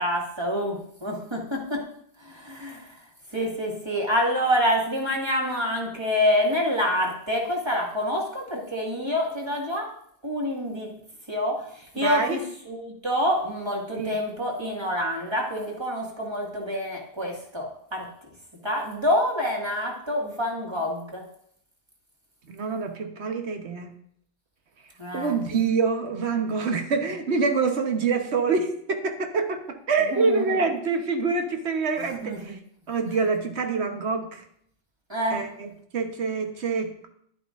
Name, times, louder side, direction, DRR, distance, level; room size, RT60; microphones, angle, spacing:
voice 1, 0.0-1.8 2.2-2.9 3.3-9.9 10.2-10.9 11.3-12.4 12.7-17.7 17.9-18.1 18.6-21.2 25.0-25.4 30.1-30.7 32.0-32.6 35.1-35.4, equal, 25° right, -2 dB, 2.0 m, -27 dB
voice 2, 12.0-12.4 13.9-14.2 22.5-23.9 25.1-32.6 32.9-34.4 35.3-37.1, right 4 dB, 75° right, 5 dB, 1.3 m, -26 dB
11.0 x 9.8 x 2.5 m, 0.67 s
omnidirectional pair, 1.1 m